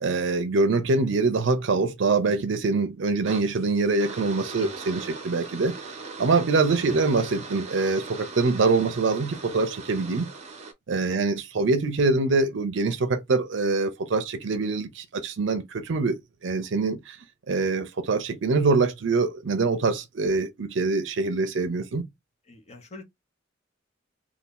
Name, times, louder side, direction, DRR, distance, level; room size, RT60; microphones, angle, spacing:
voice 1, 0.0-5.7 6.2-10.3 10.9-17.2 17.5-22.1, right 3 dB, 70° right, 0.5 m, -24 dB
sound 1, 3.2-10.7, right 4 dB, 35° right, 0.7 m, -40 dB
voice 2, 22.5-23.0, left 2 dB, 35° left, 0.8 m, -44 dB
2.7 x 2.4 x 3.6 m
head